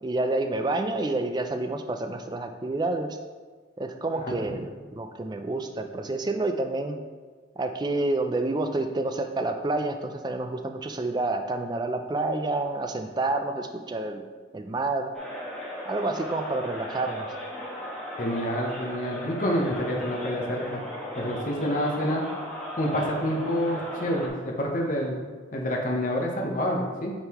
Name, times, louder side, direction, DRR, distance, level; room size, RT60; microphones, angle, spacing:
voice 1, 0.0-3.2 3.8-7.0 7.6-14.2 14.5-15.1 15.9-17.3, right 2 dB, 20° right, 6 dB, 0.3 m, -29 dB
voice 2, 4.2-4.6 18.2-20.8 21.2-22.2 22.7-25.2 25.5-27.1, equal, 40° left, 0 dB, 0.8 m, -28 dB
sound 1, 15.1-24.3, left 1 dB, 5° left, 1.0 m, -37 dB
8.7 x 3.8 x 2.9 m, 1.5 s
head